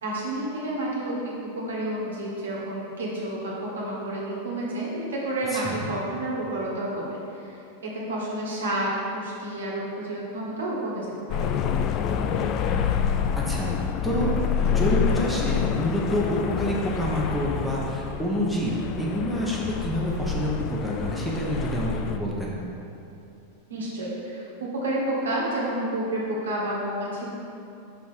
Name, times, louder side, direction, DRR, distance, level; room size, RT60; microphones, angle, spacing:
voice 1, 0.0-7.5 7.8-11.5 23.7-27.4, right 1 dB, 65° right, -4 dB, 1.3 m, -30 dB
voice 2, 5.5-6.0 13.4-14.3 14.6-22.6, equal, ahead, -5 dB, 1.0 m, -28 dB
sound 1, 11.3-22.2, left 7 dB, 35° left, 0.3 m, -27 dB
5.6 x 4.1 x 4.8 m, 2.7 s
figure-of-eight pair, 90°, 0 cm